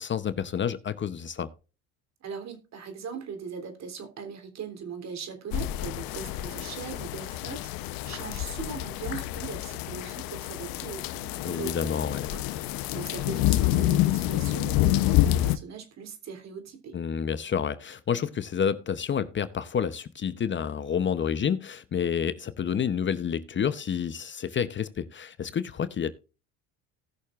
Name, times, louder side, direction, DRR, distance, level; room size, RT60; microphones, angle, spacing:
voice 1, 0.0-1.5 11.4-12.3 16.9-26.1, left 7 dB, 35° left, 0.8 m, -29 dB
voice 2, 2.2-17.0, right 6 dB, 50° right, 3.3 m, -40 dB
sound 1, 5.5-15.6, left 14 dB, 75° left, 0.9 m, -28 dB
18.5 x 6.5 x 2.5 m
supercardioid pair, 100°, 35 cm